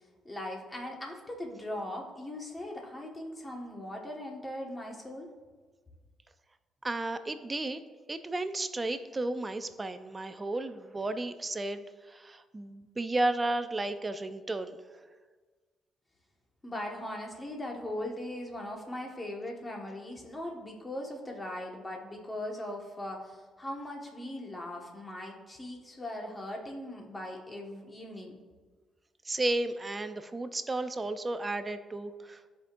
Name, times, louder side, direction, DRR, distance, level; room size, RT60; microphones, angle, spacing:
voice 1, 0.2-5.3 16.6-28.4, left 1 dB, 20° left, 0 dB, 1.5 m, -39 dB
voice 2, 6.8-7.8 8.1-14.8 29.3-32.4, right 2 dB, 25° right, 11 dB, 0.5 m, -33 dB
13.0 x 5.2 x 2.6 m, 1.4 s
cardioid pair, 90°, 0 cm